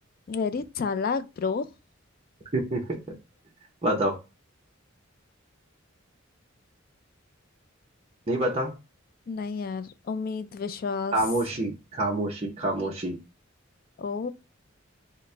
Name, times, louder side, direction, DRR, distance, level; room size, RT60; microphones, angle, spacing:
voice 1, 0.3-1.7 9.3-11.2 14.0-14.3, left 5 dB, 45° left, 0.3 m, -30 dB
voice 2, 3.8-4.2 8.3-8.7 11.1-13.2, right 1 dB, 30° right, 0.7 m, -27 dB
4.0 x 2.1 x 3.2 m
head